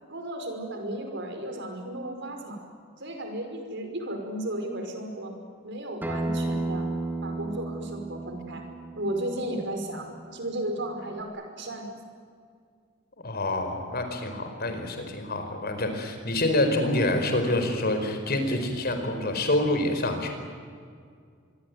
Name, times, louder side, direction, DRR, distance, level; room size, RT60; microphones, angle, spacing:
voice 1, 0.0-2.6 3.0-5.3 5.6-6.9 7.2-8.6 9.0-12.0, right 1 dB, 60° right, 5 dB, 5.4 m, -34 dB
Acoustic guitar, 6.0-11.2, right 2 dB, 10° right, 2.8 m, -34 dB
voice 2, 13.2-20.3, left 1 dB, 50° left, 6 dB, 4.7 m, -27 dB
25.5 x 22.5 x 9.6 m, 2.1 s
head